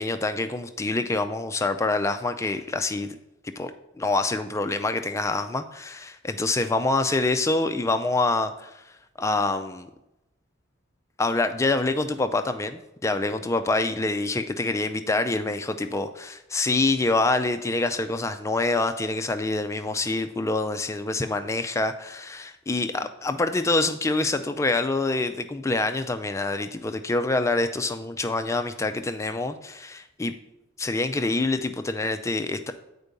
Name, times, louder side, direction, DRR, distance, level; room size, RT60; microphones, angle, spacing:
voice 1, 0.0-3.2 3.6-8.8 9.2-9.9 11.2-30.3 30.8-32.7, left 2 dB, 15° left, 9 dB, 0.3 m, -26 dB
8.2 x 4.5 x 5.2 m, 0.91 s
head